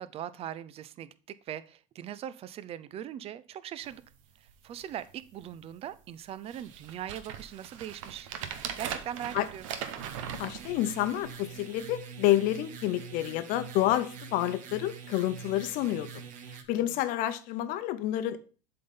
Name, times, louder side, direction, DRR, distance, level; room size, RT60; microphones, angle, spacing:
voice 1, 0.0-4.0 4.4-8.3 8.8-9.7 16.8-17.0, right 10 dB, 35° right, 0.5 m, -40 dB
sound 1, 3.8-4.0 4.5-4.6 4.8-5.3 5.9-6.0 6.5-11.3 11.9-12.0, right 9 dB, 85° right, 0.9 m, -40 dB
sound 2, 10.0-16.6, right 6 dB, 50° right, 1.1 m, -45 dB
voice 2, 10.4-16.1 16.7-18.4, left 13 dB, 55° left, 0.8 m, -29 dB
7.5 x 3.9 x 5.2 m
supercardioid pair, 115°, 17 cm